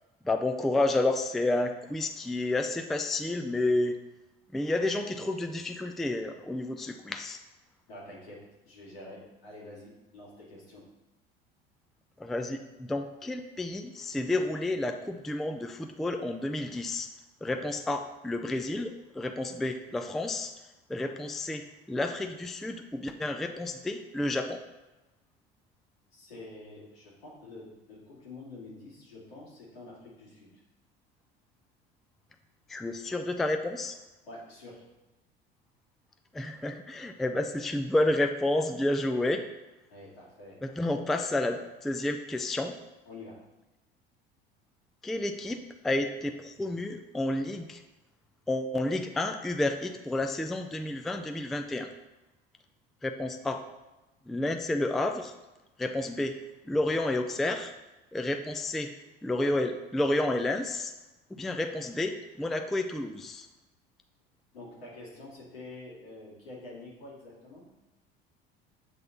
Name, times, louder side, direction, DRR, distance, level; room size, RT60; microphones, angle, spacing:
voice 1, 0.2-4.0 4.5-7.4 12.2-17.1 17.4-20.5 20.9-24.6 32.7-34.0 36.3-39.4 40.6-42.7 45.0-45.6 45.8-47.8 48.5-51.9 53.0-53.6 54.3-55.3 55.8-56.4 56.7-57.7 58.1-58.9 59.2-60.9 61.3-63.5, left 2 dB, ahead, 6 dB, 0.3 m, -30 dB
voice 2, 7.9-8.4 8.6-10.8 26.1-30.6 34.3-34.8 39.9-41.0 43.1-43.4 64.5-67.7, left 2 dB, 80° left, -6 dB, 2.3 m, -47 dB
7.4 x 3.9 x 3.9 m, 1.0 s
hypercardioid pair, 70°, 30 cm